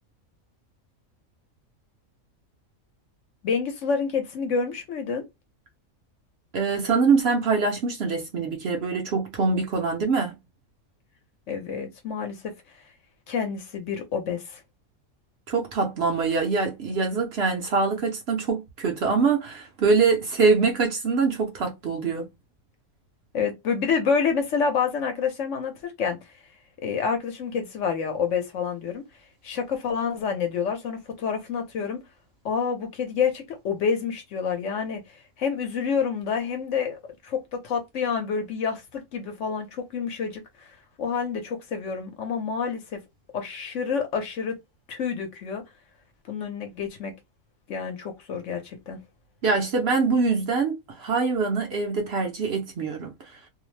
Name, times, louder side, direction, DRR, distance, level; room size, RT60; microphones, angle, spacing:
voice 1, 3.4-5.2 11.5-12.4 13.3-14.6 23.3-26.2 26.8-29.0 29.4-32.0 32.4-40.4 41.0-43.0 43.3-44.6 44.9-45.6 46.3-47.1 47.7-49.0, left 6 dB, 65° left, 1.1 m, -28 dB
voice 2, 6.5-10.4 15.5-22.3 49.4-53.4, right 4 dB, 60° right, 0.8 m, -24 dB
2.7 x 2.0 x 3.1 m
omnidirectional pair, 1.4 m